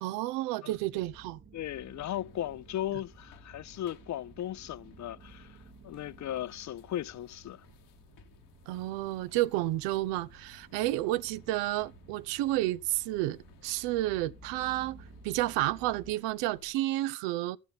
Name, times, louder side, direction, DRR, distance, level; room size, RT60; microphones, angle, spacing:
voice 1, 0.0-1.4 8.7-17.6, right 16 dB, 80° right, 0.6 m, -31 dB
sound 1, 0.7-16.1, right 4 dB, 30° right, 1.1 m, -55 dB
voice 2, 1.5-5.6 5.8-7.7, left 12 dB, 45° left, 0.4 m, -37 dB
sound 2, 1.6-16.7, left 7 dB, 75° left, 1.3 m, -60 dB
12.5 x 8.2 x 3.9 m
hypercardioid pair, 50°, 42 cm